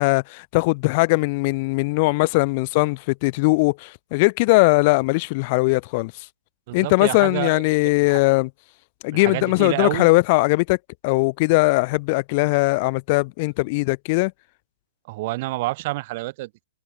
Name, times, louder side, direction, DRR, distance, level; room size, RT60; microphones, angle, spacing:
voice 1, 0.0-6.1 6.7-8.5 9.0-10.8 11.0-14.3, left 26 dB, 40° left, 0.5 m, -20 dB
voice 2, 6.7-8.2 9.1-10.1 15.1-16.6, right 20 dB, 45° right, 0.4 m, -29 dB
hypercardioid pair, 130°, 0 cm